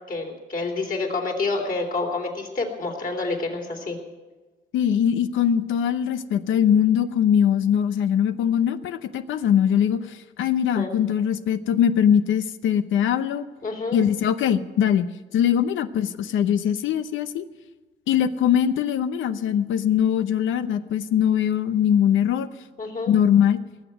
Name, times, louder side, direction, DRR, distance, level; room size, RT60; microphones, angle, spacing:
voice 1, 0.1-4.0 10.8-10.9 13.6-14.0 22.8-23.1, left 3 dB, 45° left, 1 dB, 3.4 m, -28 dB
voice 2, 4.7-13.5 13.9-17.5 18.1-22.5 23.1-23.6, left 9 dB, 80° left, 12 dB, 0.8 m, -21 dB
18.0 x 7.4 x 9.1 m, 1.3 s
cardioid pair, 90°, 20 cm